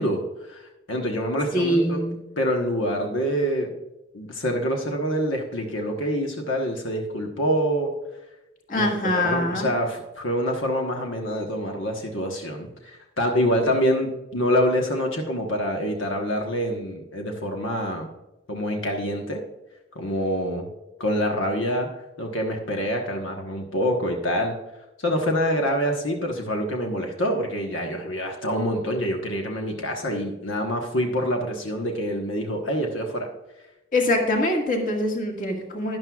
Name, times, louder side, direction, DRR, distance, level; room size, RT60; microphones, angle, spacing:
voice 1, 0.0-2.1 2.4-3.8 4.1-7.9 8.7-18.1 18.5-19.4 19.9-20.7 21.0-21.9 22.2-24.5 25.0-33.3, equal, 85° left, 2 dB, 1.2 m, -26 dB
voice 2, 1.5-2.2 8.7-9.7 33.9-36.0, left 1 dB, 45° left, 1 dB, 1.9 m, -23 dB
12.0 x 11.0 x 2.4 m, 0.97 s
head